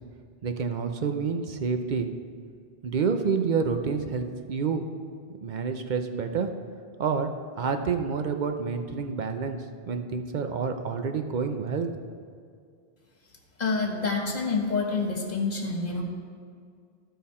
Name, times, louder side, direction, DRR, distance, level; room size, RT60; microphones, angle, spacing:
voice 1, 0.4-2.1 2.8-4.8 5.4-6.5 7.0-7.3 7.6-9.6 9.9-11.9, right 5 dB, 50° right, 6 dB, 0.7 m, -28 dB
voice 2, 13.6-16.0, left 4 dB, 45° left, 1 dB, 1.4 m, -27 dB
14.5 x 5.6 x 4.3 m, 2.2 s
omnidirectional pair, 1.0 m